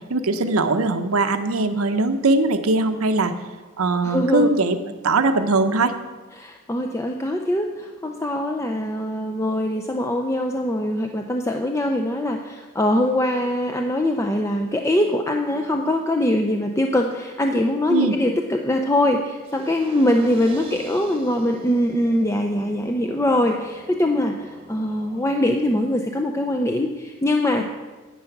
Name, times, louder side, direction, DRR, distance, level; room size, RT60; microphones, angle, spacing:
voice 1, 0.1-3.3 3.8-4.8 5.0-5.9 17.9-18.2, right 3 dB, 85° right, 8 dB, 0.8 m, -20 dB
voice 2, 4.0-4.5 6.4-27.6, left 1 dB, 15° left, 3 dB, 0.5 m, -22 dB
sound 1, 19.4-25.4, right 2 dB, 25° right, 1.1 m, -43 dB
10.0 x 8.9 x 5.9 m, 1.3 s
head